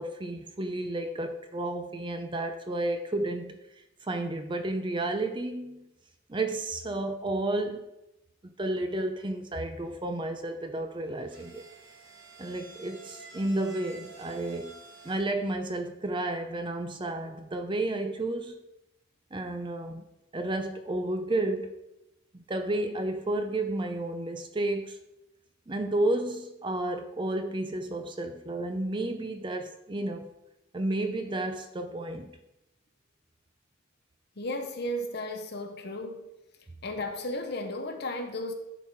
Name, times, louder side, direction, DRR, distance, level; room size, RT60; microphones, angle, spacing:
voice 1, 0.0-3.6 4.1-5.9 6.3-7.9 8.6-11.6 12.4-14.7 15.0-18.6 19.3-20.0 20.3-21.7 22.3-25.0 25.7-30.3 30.7-32.3, right 2 dB, 25° right, 0.6 m, -31 dB
sound 1, 11.0-15.2, right 3 dB, 60° right, 2.6 m, -50 dB
voice 2, 34.4-36.3 36.8-38.5, left 1 dB, 55° left, 1.0 m, -34 dB
11.0 x 4.5 x 4.6 m
head